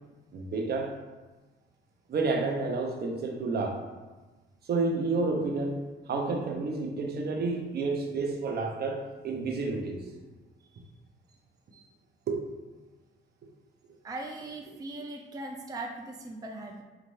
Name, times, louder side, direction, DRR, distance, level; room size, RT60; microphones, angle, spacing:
voice 1, 0.3-0.9 2.1-3.8 4.7-5.8 6.1-10.0 12.3-12.4, right 3 dB, 55° right, 2 dB, 0.7 m, -30 dB
voice 2, 14.0-16.8, right 2 dB, 20° right, 1 dB, 0.4 m, -39 dB
5.2 x 2.5 x 3.1 m, 1.2 s
cardioid pair, 90°, 20 cm